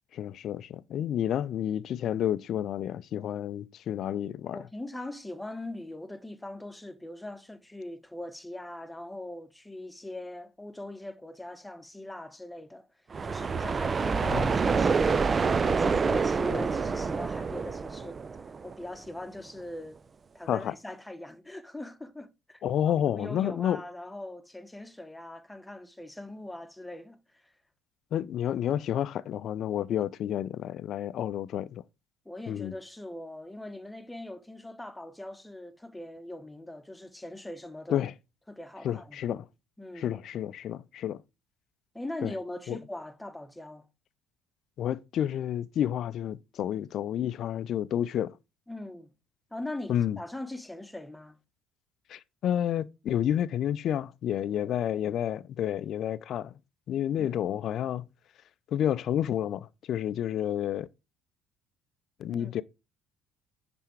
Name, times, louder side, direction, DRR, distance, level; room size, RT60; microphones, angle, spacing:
voice 1, 0.1-4.6 14.2-14.5 20.5-20.7 22.6-23.8 28.1-31.8 32.5-32.7 37.9-38.1 38.8-39.5 40.0-41.2 42.2-42.3 42.7-42.8 44.8-48.4 49.9-50.2 52.1-56.5 56.9-58.0 58.7-60.9 62.2-62.6, left 10 dB, 55° left, 0.5 m, -30 dB
voice 2, 4.5-12.9 13.2-20.0 20.3-27.5 32.2-38.0 38.5-39.2 39.8-40.2 41.9-43.9 48.7-49.1 49.5-51.4 54.5-54.8 57.2-57.4 62.3-62.5, left 1 dB, 5° left, 1.0 m, -41 dB
sound 1, 13.1-18.9, right 5 dB, 35° right, 0.4 m, -27 dB
10.0 x 3.5 x 4.6 m
hypercardioid pair, 60°, 0 cm